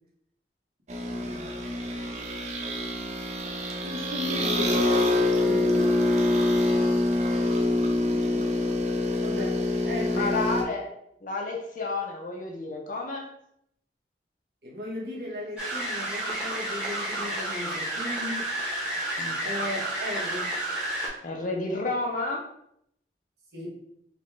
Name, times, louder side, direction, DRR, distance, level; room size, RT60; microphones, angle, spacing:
sound 1, 0.9-10.6, left 1 dB, 40° right, 0.4 m, -25 dB
voice 1, 1.1-1.6 3.8-6.0 9.2-10.4 14.6-18.5 19.4-20.6 23.5-23.7, left 1 dB, 60° right, -5 dB, 1.2 m, -36 dB
voice 2, 10.1-10.9 11.2-13.2 19.2-19.4 21.2-22.4, left 3 dB, 45° left, 1 dB, 0.6 m, -31 dB
sound 2, 15.6-21.1, right 1 dB, 5° right, 1.0 m, -31 dB
4.1 x 2.3 x 3.1 m, 0.74 s
head